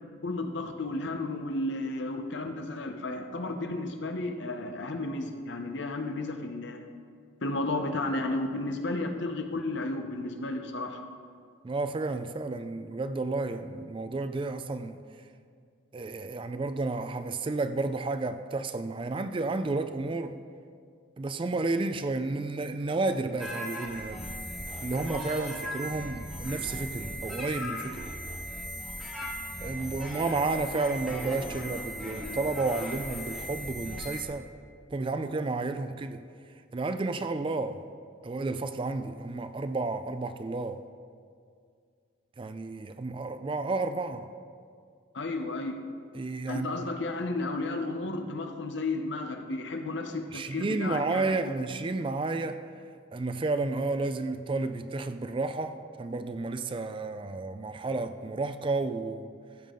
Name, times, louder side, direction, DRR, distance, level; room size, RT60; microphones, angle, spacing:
voice 1, 0.2-6.9 7.4-11.0 45.1-45.8 46.5-51.3, left 2 dB, 60° left, 6 dB, 0.8 m, -33 dB
voice 2, 11.6-15.0 15.9-20.3 21.2-24.2 24.8-28.1 29.6-34.5 34.9-36.2 36.7-37.8 38.2-40.8 42.4-44.3 46.2-46.9 50.3-52.6 53.1-59.3, right 3 dB, 25° right, 10 dB, 0.3 m, -31 dB
sound 1, 23.4-34.2, equal, ahead, 1.7 m, -38 dB
15.0 x 7.5 x 3.8 m, 2.2 s
head